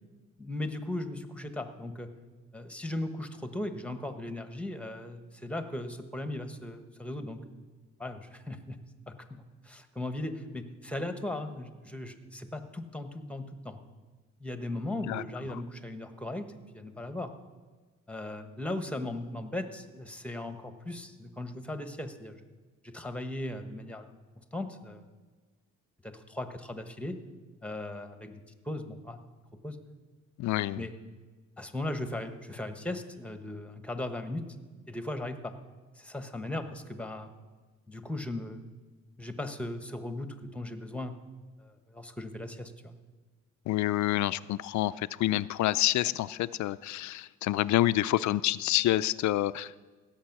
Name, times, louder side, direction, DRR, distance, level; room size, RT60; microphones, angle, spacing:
voice 1, 0.4-2.1 2.5-7.4 8.0-8.8 9.1-13.8 14.4-16.5 16.7-17.3 18.1-22.4 22.8-24.1 24.5-25.0 26.0-27.2 27.6-29.2 29.6-29.8 30.7-30.9 31.6-34.4 34.9-35.5 36.0-37.3 37.9-38.6 39.2-41.1 41.6-43.0, left 1 dB, 5° left, 8 dB, 1.2 m, -37 dB
voice 2, 30.4-30.9 43.7-49.8, left 15 dB, 70° left, 17 dB, 0.4 m, -28 dB
16.0 x 7.2 x 6.0 m, 1.4 s
cardioid pair, 90°, 30 cm